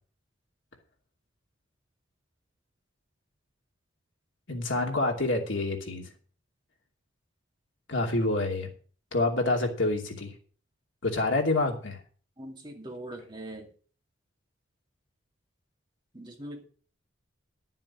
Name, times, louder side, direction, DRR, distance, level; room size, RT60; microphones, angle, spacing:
voice 1, 4.5-6.1 7.9-8.7 9.1-10.3 11.0-12.0, left 2 dB, 70° left, 1 dB, 2.7 m, -27 dB
voice 2, 12.4-13.7 16.1-16.6, right 1 dB, 25° right, 1 dB, 2.2 m, -41 dB
12.0 x 7.5 x 5.7 m, 0.42 s
head